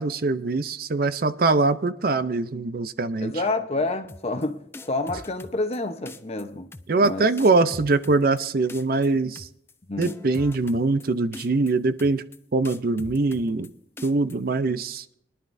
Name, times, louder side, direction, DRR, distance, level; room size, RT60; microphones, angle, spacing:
voice 1, 0.0-3.3 6.9-9.5 10.0-12.2 12.5-13.7 14.0-15.0, right 3 dB, 55° right, 0.5 m, -23 dB
voice 2, 3.2-6.7 7.0-7.3 9.9-10.2, left 2 dB, 35° left, 0.8 m, -28 dB
sound 1, 4.1-4.4 4.7-5.8 6.1-6.4 6.7-7.1 7.4-8.4 8.7-9.1 9.3-9.7 10.0-11.0 11.3-11.7 12.0-12.4 12.6-13.7 14.0-14.3, left 2 dB, 15° left, 0.4 m, -41 dB
22.0 x 11.0 x 2.6 m
head